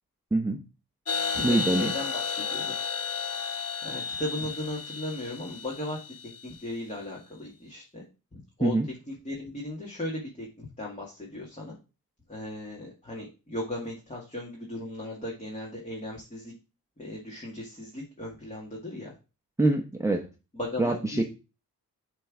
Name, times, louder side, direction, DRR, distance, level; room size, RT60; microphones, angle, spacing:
voice 1, 0.3-0.6 1.4-1.9 8.6-8.9 19.6-20.3 20.8-21.2, right 2 dB, 10° right, 0.7 m, -24 dB
sound 1, 1.1-6.6, left 6 dB, 40° left, 0.9 m, -33 dB
voice 2, 1.3-2.7 3.0-3.4 3.8-6.0 6.4-8.0 8.3-8.7 9.2-11.8 12.3-16.5 17.0-19.1 20.5-21.2, left 1 dB, 20° left, 2.0 m, -37 dB
7.5 x 3.5 x 4.8 m
cardioid pair, 80°, 38 cm